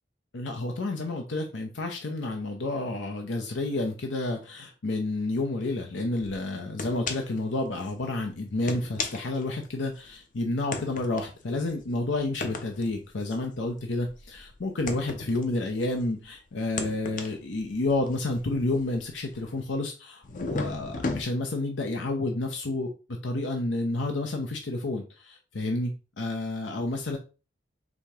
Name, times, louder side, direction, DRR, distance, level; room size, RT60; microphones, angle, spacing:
voice 1, 0.3-22.9 23.2-27.2, left 2 dB, 85° left, 3 dB, 0.7 m, -30 dB
sound 1, 6.2-6.3 6.8-7.4 7.8-7.9 8.5-10.1 10.7-16.2 16.6-19.7 20.2-21.2, left 3 dB, 45° left, 0.6 m, -36 dB
5.0 x 2.8 x 3.5 m, 0.32 s
head